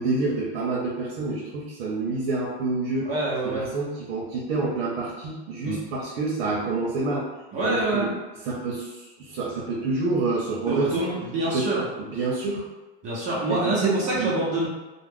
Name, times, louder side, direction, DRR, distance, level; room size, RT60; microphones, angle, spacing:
voice 1, 0.0-3.1 3.4-7.3 7.6-8.1 8.4-11.1 11.5-11.7 12.0-12.6 13.5-14.4, right 3 dB, 85° right, -3 dB, 0.7 m, -28 dB
voice 2, 3.0-3.7 5.6-5.8 7.5-8.1 10.7-11.9 13.0-14.7, right 2 dB, 25° right, -7 dB, 0.6 m, -26 dB
2.4 x 2.0 x 3.4 m, 1.2 s
supercardioid pair, 165°, 30 cm